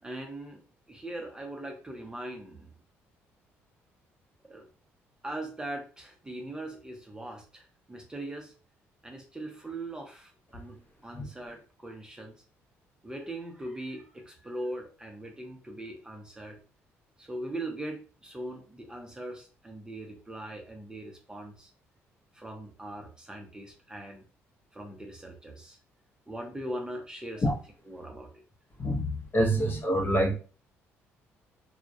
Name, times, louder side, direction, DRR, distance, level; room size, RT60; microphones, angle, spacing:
voice 1, 0.0-0.6 0.9-2.7 4.4-4.7 5.2-8.5 9.0-12.4 13.0-16.6 17.2-21.7 22.3-24.2 24.7-25.8 26.3-27.6 27.9-28.3, right 1 dB, 15° right, 0.6 m, -40 dB
voice 2, 28.8-30.3, equal, 40° left, 0.7 m, -26 dB
2.3 x 2.0 x 2.6 m
supercardioid pair, 75°, 5 cm